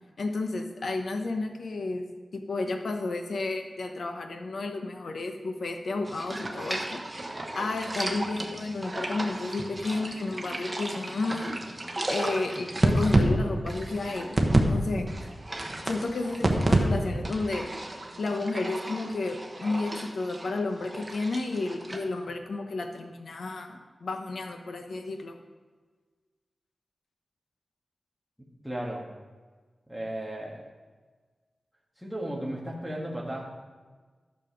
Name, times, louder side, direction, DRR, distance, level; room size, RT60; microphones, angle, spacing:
voice 1, 0.2-2.0 2.3-7.0 7.5-11.6 12.1-14.4 14.6-15.1 15.8-17.7 18.2-25.4, left 3 dB, 80° left, 5 dB, 1.1 m, -32 dB
sound 1, 6.0-14.7 15.0-16.8 17.1-22.0, right 1 dB, 25° right, 1.3 m, -30 dB
voice 2, 28.6-29.1 29.9-30.6 32.0-33.4, right 1 dB, ahead, -2 dB, 1.8 m, -34 dB
12.0 x 6.6 x 5.2 m, 1.4 s
wide cardioid pair, 95°, 0 cm